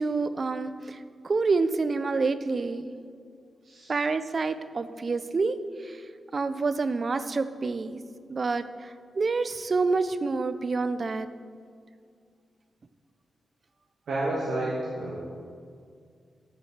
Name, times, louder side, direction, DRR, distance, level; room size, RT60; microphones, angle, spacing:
voice 1, 0.0-2.9 3.9-5.6 5.8-6.0 6.3-8.0 8.3-11.3, right 4 dB, 40° right, 12 dB, 0.4 m, -28 dB
voice 2, 14.1-15.2, right 1 dB, 75° right, -6 dB, 1.5 m, -30 dB
8.8 x 5.5 x 5.9 m, 2.2 s
wide cardioid pair, 135°, 0 cm